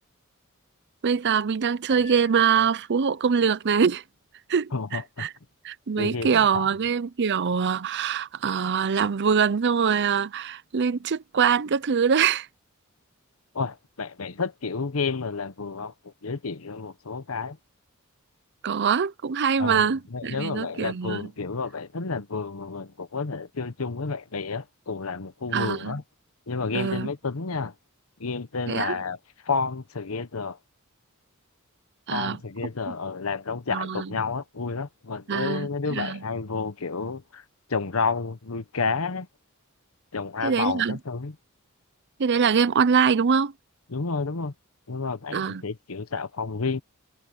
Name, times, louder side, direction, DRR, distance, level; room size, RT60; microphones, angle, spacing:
voice 1, 1.0-4.0 4.5-5.3 5.6-12.5 18.6-21.3 25.5-26.0 26.7-27.1 28.7-29.0 32.1-32.4 33.7-34.1 35.3-36.2 40.4-41.0 42.2-43.5 45.3-45.6, right 6 dB, 55° right, 0.6 m, -24 dB
Piano, 1.9-3.2, left 3 dB, 15° left, 5.8 m, -47 dB
voice 2, 4.7-5.3 6.0-6.7 13.5-17.6 19.6-26.0 26.5-27.7 28.2-29.2 29.4-30.6 32.1-37.4 37.7-39.3 40.1-41.4 43.9-44.5 44.9-46.8, left 4 dB, 75° left, 1.0 m, -30 dB
head